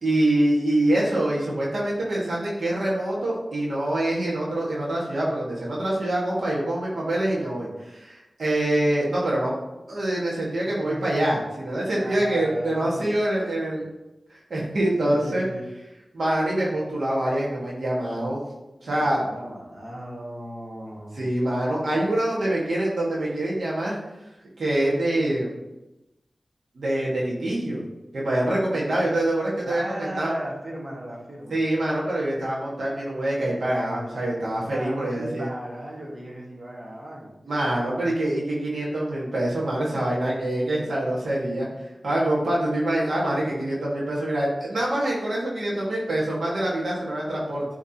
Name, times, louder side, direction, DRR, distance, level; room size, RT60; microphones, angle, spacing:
voice 1, 0.0-9.5 9.9-13.8 14.3-15.4 16.1-18.4 18.8-19.2 21.1-24.0 24.6-25.5 26.7-27.8 28.1-30.3 31.5-35.5 37.4-41.7 42.0-47.6, right 1 dB, 85° right, -6 dB, 1.7 m, -25 dB
voice 2, 10.8-11.4 12.0-13.2 13.8-13.9 15.0-15.7 18.8-21.3 29.6-31.6 34.6-37.4 39.9-40.0, right 1 dB, 45° right, -4 dB, 1.7 m, -37 dB
10.0 x 3.6 x 2.9 m, 1.0 s
wide cardioid pair, 65°, 0 cm